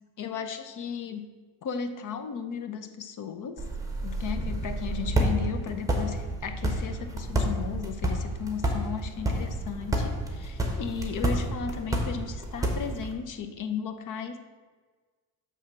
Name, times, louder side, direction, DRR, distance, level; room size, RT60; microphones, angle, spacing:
voice 1, 0.2-1.3 1.6-3.6 4.0-14.4, left 7 dB, 55° left, 8 dB, 0.8 m, -35 dB
sound 1, 3.6-13.1, right 1 dB, 10° right, 1.1 m, -30 dB
7.2 x 3.4 x 6.2 m, 1.4 s
cardioid pair, 115°, 37 cm